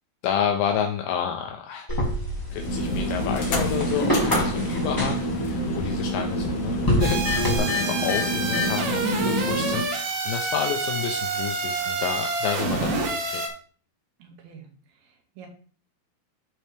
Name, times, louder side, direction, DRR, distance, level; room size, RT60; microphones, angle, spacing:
voice 1, 0.2-1.9 2.5-13.4, left 8 dB, 80° left, 3 dB, 2.4 m, -30 dB
sound 1, 1.9-7.6, equal, 15° left, 0.7 m, -28 dB
sound 2, 2.5-9.8, left 1 dB, 50° left, 2.0 m, -27 dB
sound 3, 7.0-13.5, right 3 dB, 60° right, 1.7 m, -28 dB
voice 2, 9.0-9.5 14.2-14.7 15.0-15.5, right 3 dB, 80° right, 2 dB, 3.4 m, -34 dB
12.5 x 4.4 x 3.4 m, 0.43 s
omnidirectional pair, 4.3 m